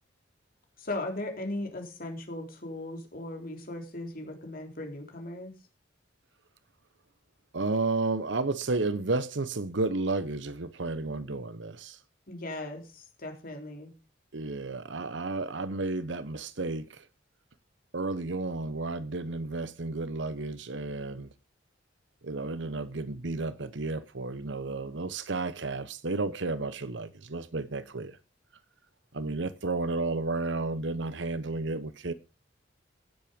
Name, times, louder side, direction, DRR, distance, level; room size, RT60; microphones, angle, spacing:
voice 1, 0.8-5.5 12.3-13.9, left 1 dB, 50° left, 3.4 m, -38 dB
voice 2, 7.5-12.0 14.3-17.0 17.9-21.3 22.2-28.2 29.1-32.1, right 3 dB, 75° right, 1.0 m, -32 dB
16.5 x 7.8 x 5.2 m
head